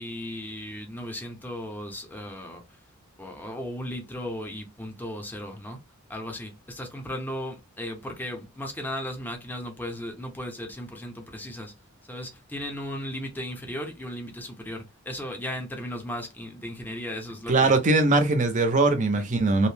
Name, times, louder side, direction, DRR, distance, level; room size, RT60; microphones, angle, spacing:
voice 1, 0.0-2.6 3.2-5.8 6.1-11.7 12.1-17.8, left 1 dB, 10° left, 0.6 m, -36 dB
voice 2, 17.5-19.7, right 3 dB, 35° right, 0.5 m, -21 dB
2.6 x 2.0 x 3.1 m
head